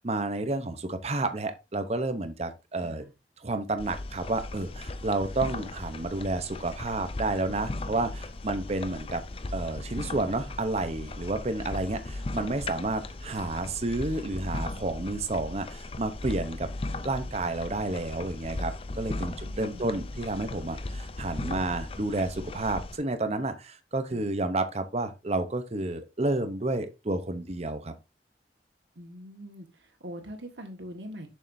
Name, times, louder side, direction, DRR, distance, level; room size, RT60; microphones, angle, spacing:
voice 1, 0.0-3.0 3.4-9.2 9.5-16.7 17.0-27.9, right 2 dB, 35° right, 0.8 m, -30 dB
voice 2, 2.8-3.1 12.6-12.8 19.1-20.0 24.1-24.3 28.9-31.3, equal, 85° right, 1.7 m, -44 dB
sound 1, 3.8-23.0, left 2 dB, 30° left, 0.5 m, -37 dB
7.1 x 6.4 x 2.6 m
head